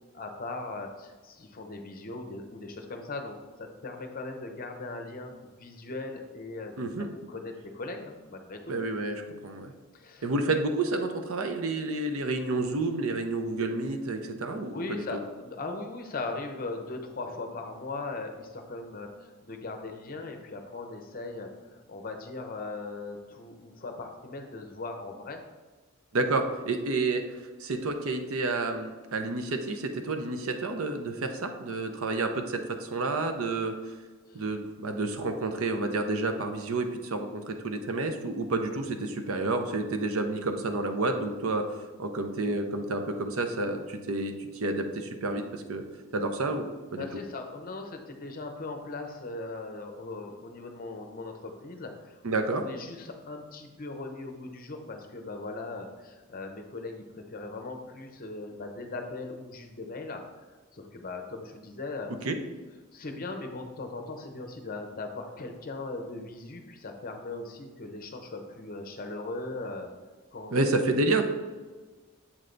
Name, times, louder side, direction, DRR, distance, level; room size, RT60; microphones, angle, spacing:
voice 1, 0.1-6.9 7.3-8.7 9.9-10.3 14.6-25.4 34.3-34.4 47.0-52.4 52.6-60.2 60.7-62.1 62.9-69.9 70.3-70.5, left 3 dB, 40° left, 4 dB, 0.7 m, -39 dB
voice 2, 6.8-7.1 8.7-9.7 10.2-15.2 26.1-27.2 27.6-33.9 34.3-41.6 42.0-45.8 46.1-47.2 52.2-52.6 62.2-62.4 70.5-71.2, right 2 dB, 70° right, 6 dB, 0.6 m, -30 dB
7.3 x 3.3 x 3.8 m, 1.3 s
head